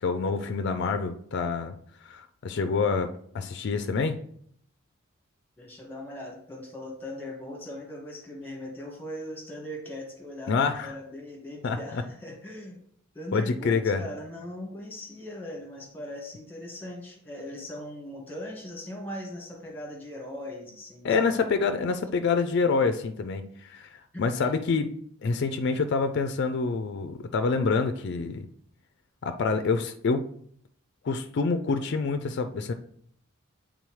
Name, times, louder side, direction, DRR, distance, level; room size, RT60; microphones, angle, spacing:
voice 1, 0.0-1.7 2.0-4.2 10.5-10.9 11.6-11.8 13.3-14.0 21.0-23.9 24.2-24.9 25.2-28.5 29.2-30.3 31.0-32.7, left 4 dB, 55° left, 7 dB, 0.4 m, -27 dB
voice 2, 5.6-12.8 13.1-21.6 24.1-24.6, left 1 dB, 10° left, -1 dB, 1.6 m, -40 dB
8.3 x 3.7 x 3.2 m, 0.65 s
head